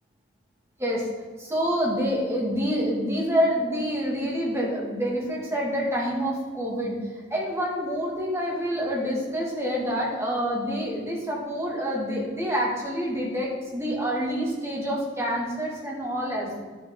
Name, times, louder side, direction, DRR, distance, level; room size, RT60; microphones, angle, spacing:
voice 1, 1.4-7.0 7.3-16.6, equal, 15° right, -3 dB, 2.2 m, -27 dB
11.5 x 6.6 x 4.0 m, 1.4 s
head